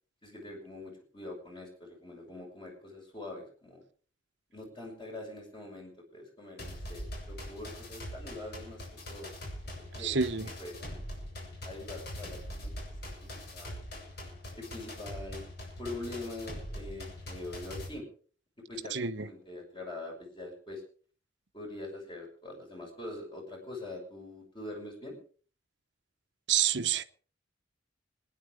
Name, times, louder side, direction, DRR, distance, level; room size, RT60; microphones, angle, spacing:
voice 1, 0.2-3.8 4.5-8.8 9.1-9.4 10.0-10.2 10.6-11.0 11.6-12.7 13.2-13.8 14.5-15.4 15.8-18.1 18.7-20.8 21.5-25.2, left 2 dB, 25° left, 6.5 m, -43 dB
sound 1, 6.6-17.9, left 1 dB, 55° left, 7.8 m, -42 dB
voice 2, 10.0-10.5 18.9-19.3 26.5-27.0, right 8 dB, 65° right, 0.9 m, -28 dB
26.0 x 10.5 x 5.0 m
head